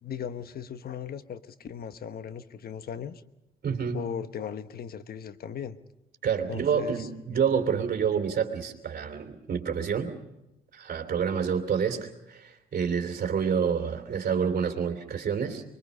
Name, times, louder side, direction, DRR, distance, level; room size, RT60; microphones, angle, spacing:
voice 1, 0.0-3.2 3.9-5.8 6.5-7.1, left 8 dB, 60° left, 12 dB, 1.2 m, -37 dB
voice 2, 3.6-4.0 6.2-10.1 10.7-15.6, right 7 dB, 55° right, 4 dB, 3.1 m, -28 dB
25.0 x 22.0 x 5.5 m, 0.90 s
cardioid pair, 80°, 18 cm